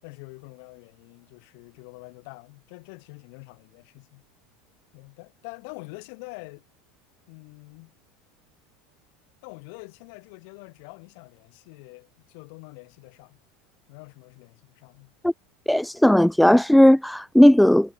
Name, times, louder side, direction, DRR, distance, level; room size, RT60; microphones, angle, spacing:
voice 1, 0.0-4.2 4.9-6.6 7.3-7.9 9.4-13.4 13.9-15.1, left 34 dB, 65° left, 7.8 m, -45 dB
voice 2, 15.7-17.9, left 1 dB, ahead, 0.5 m, -16 dB
supercardioid pair, 125°, 0 cm